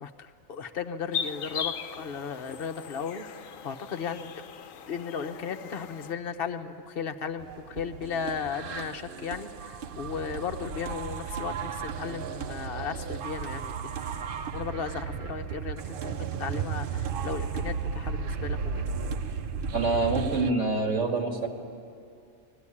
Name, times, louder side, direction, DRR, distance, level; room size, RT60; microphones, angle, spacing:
voice 1, 0.0-3.3 3.6-4.3 4.9-14.0 14.5-18.6, left 6 dB, 50° left, 6 dB, 1.1 m, -35 dB
sound 1, 1.1-6.1, left 7 dB, 85° left, 1.1 m, -38 dB
sound 2, 7.4-20.5, right 6 dB, 55° right, 0.7 m, -34 dB
voice 2, 19.7-21.5, right 3 dB, 70° right, 2 dB, 2.4 m, -26 dB
21.5 x 15.0 x 9.9 m, 2.4 s
omnidirectional pair, 1.3 m